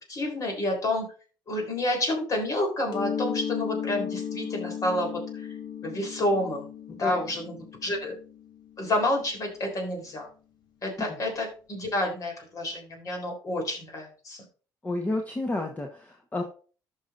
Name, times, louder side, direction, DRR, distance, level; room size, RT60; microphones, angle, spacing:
voice 1, 0.1-1.1 1.5-5.5 5.8-6.7 7.0-7.6 7.8-8.2 8.8-10.3 10.8-14.4, left 1 dB, 50° left, 3 dB, 3.8 m, -29 dB
Mallet percussion, 2.9-8.5, left 7 dB, 65° left, 1.5 m, -35 dB
voice 2, 14.8-16.4, left 2 dB, 20° left, 3 dB, 1.1 m, -31 dB
14.5 x 5.7 x 2.6 m, 0.38 s
cardioid pair, 95°, 8 cm